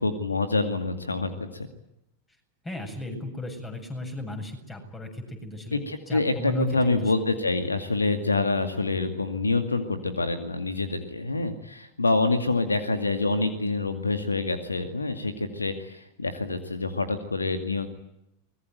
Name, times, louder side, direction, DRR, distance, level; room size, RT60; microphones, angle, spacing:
voice 1, 0.0-1.7 5.7-17.9, left 3 dB, 80° left, 8 dB, 2.2 m, -26 dB
voice 2, 2.6-5.8 6.1-7.1, left 2 dB, 15° left, 6 dB, 7.6 m, -35 dB
24.0 x 21.0 x 9.3 m, 0.84 s
figure-of-eight pair, 90°, 0 cm